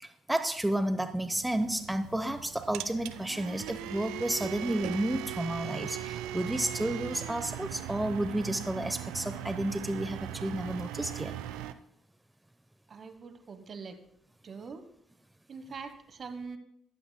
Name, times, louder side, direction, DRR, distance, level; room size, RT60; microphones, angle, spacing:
voice 1, 0.0-11.3, right 1 dB, 10° right, 9 dB, 0.8 m, -31 dB
sound 1, 1.2-11.7, right 12 dB, 75° right, 0.4 m, -39 dB
voice 2, 12.9-14.0 14.4-14.9 15.5-16.6, right 5 dB, 50° right, 10 dB, 1.1 m, -43 dB
15.0 x 11.5 x 2.2 m, 0.74 s
hypercardioid pair, 50°, 0 cm